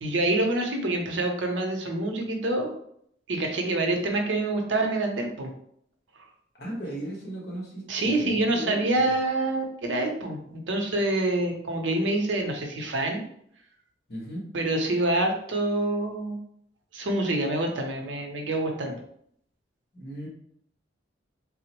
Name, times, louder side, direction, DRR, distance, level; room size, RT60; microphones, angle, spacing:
voice 1, 0.0-2.7 3.3-5.5 7.9-13.2 14.5-16.4 16.9-19.0, right 2 dB, 80° right, 2 dB, 0.6 m, -26 dB
voice 2, 6.6-9.1 14.1-14.4 19.9-20.3, equal, 55° left, -4 dB, 1.1 m, -36 dB
3.6 x 2.0 x 2.9 m, 0.68 s
head